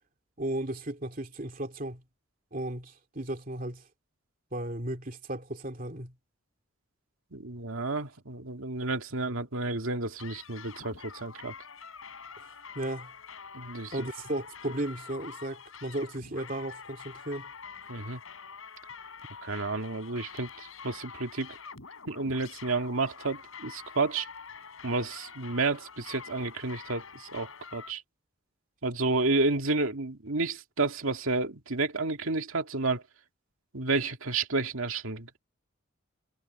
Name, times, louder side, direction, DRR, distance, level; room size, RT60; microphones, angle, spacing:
voice 1, 0.4-2.0 2.5-3.8 4.5-6.1 12.7-13.1 13.9-17.5, right 1 dB, 40° right, 2.7 m, -35 dB
voice 2, 7.3-11.5 13.5-14.1 17.9-18.2 19.4-21.6 22.1-24.3 24.8-28.0 28.8-33.0 33.7-35.4, right 3 dB, 80° right, 2.2 m, -31 dB
sound 1, 10.2-27.9, left 6 dB, 85° left, 4.8 m, -46 dB
head